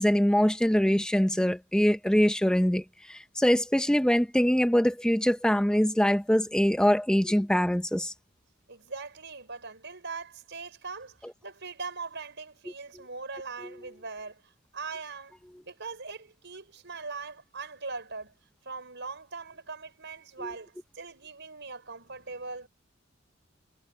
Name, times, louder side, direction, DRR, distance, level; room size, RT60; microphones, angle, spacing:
voice 1, 0.0-8.1, equal, 5° left, 0.6 m, -23 dB
voice 2, 8.7-15.4 15.6-18.3 18.7-22.7, right 4 dB, 60° right, 5.7 m, -41 dB
head